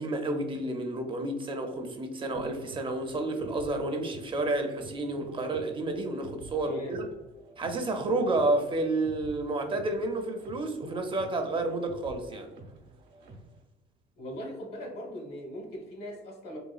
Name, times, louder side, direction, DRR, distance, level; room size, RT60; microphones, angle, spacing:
voice 1, 0.0-7.1 7.6-12.5, right 2 dB, 30° right, 4 dB, 0.4 m, -30 dB
sound 1, 2.3-13.6, right 2 dB, 85° right, 0.7 m, -50 dB
voice 2, 6.6-7.0 14.2-16.6, equal, 70° left, 1 dB, 1.1 m, -40 dB
3.9 x 2.2 x 2.3 m, 1.1 s
cardioid pair, 110°, 17 cm